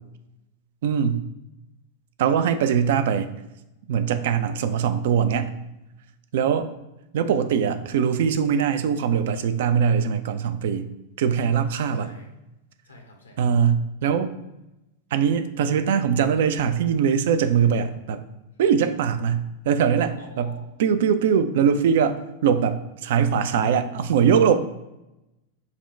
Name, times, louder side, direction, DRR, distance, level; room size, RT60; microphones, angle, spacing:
voice 1, 0.8-1.2 2.2-3.3 3.9-5.5 6.3-6.7 7.1-10.9 11.2-12.1 13.4-14.3 15.1-18.2 18.6-20.5 20.8-24.6, right 7 dB, 55° right, 10 dB, 0.4 m, -22 dB
voice 2, 11.6-12.4 12.8-13.5 20.2-20.6, left 2 dB, 75° left, 2 dB, 1.0 m, -47 dB
5.7 x 2.1 x 4.3 m, 0.94 s
figure-of-eight pair, 90°, 0 cm